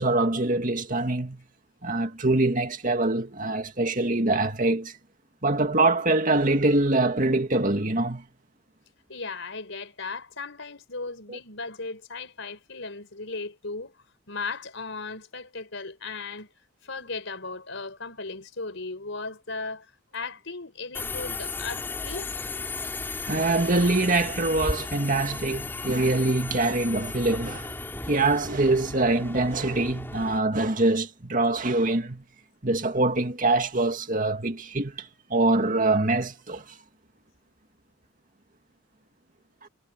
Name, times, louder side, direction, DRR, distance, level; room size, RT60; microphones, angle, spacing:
voice 1, 0.0-1.4 1.8-4.9 5.4-8.2 11.3-11.4 23.3-27.7 28.1-32.2 32.6-35.0 35.3-36.6 39.6-39.7, right 2 dB, 40° right, 2.3 m, -24 dB
voice 2, 9.1-13.9 14.3-16.5 16.8-19.9 20.1-22.3, left 3 dB, 65° left, 5.4 m, -36 dB
Subway metro underground, 20.9-30.4, left 3 dB, 10° left, 3.2 m, -35 dB
head